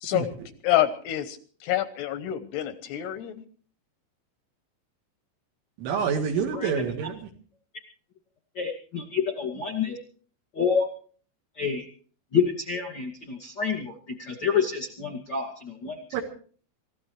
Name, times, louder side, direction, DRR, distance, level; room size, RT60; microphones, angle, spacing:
voice 1, 0.6-1.4 1.6-3.4, left 13 dB, 80° left, 10 dB, 2.5 m, -27 dB
voice 2, 5.8-7.3 16.1-16.2, right 7 dB, 75° right, 2 dB, 4.0 m, -27 dB
voice 3, 8.5-10.0 10.5-10.8 11.6-11.8 12.3-13.9 14.2-16.2, left 6 dB, 45° left, 1 dB, 1.4 m, -28 dB
27.0 x 15.0 x 3.2 m, 0.43 s
omnidirectional pair, 5.8 m